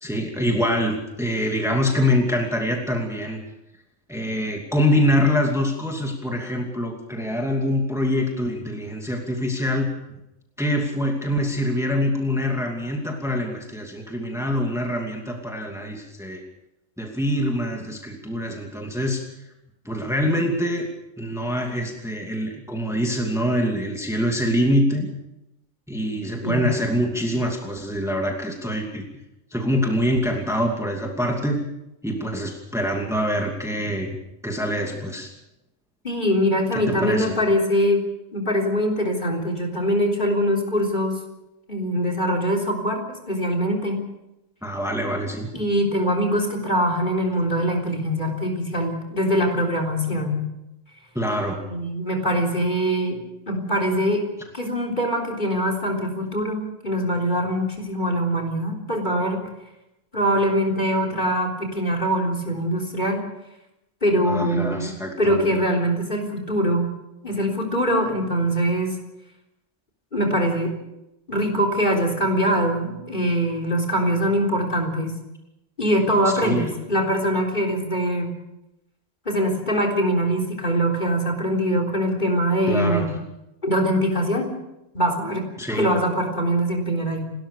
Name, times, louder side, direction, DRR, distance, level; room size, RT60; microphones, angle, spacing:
voice 1, 0.0-3.4 4.1-9.9 10.6-16.4 17.0-19.2 19.8-20.9 21.2-25.1 25.9-29.0 29.5-31.6 32.0-34.2 34.4-35.3 36.7-37.4 44.6-45.5 51.1-51.6 64.2-65.5 76.4-76.7 82.7-83.2 85.6-85.9, equal, ahead, 2 dB, 2.6 m, -24 dB
voice 2, 36.0-38.0 38.3-41.2 41.7-44.0 45.5-50.4 51.7-53.2 53.5-54.2 54.5-59.4 60.1-63.2 64.0-64.9 65.2-66.9 67.2-69.0 70.1-70.7 71.3-75.1 75.8-78.3 79.3-83.1 83.6-84.5 84.9-85.5 85.8-87.3, equal, 40° left, 4 dB, 4.0 m, -23 dB
29.5 x 13.0 x 6.7 m, 0.90 s
omnidirectional pair, 1.3 m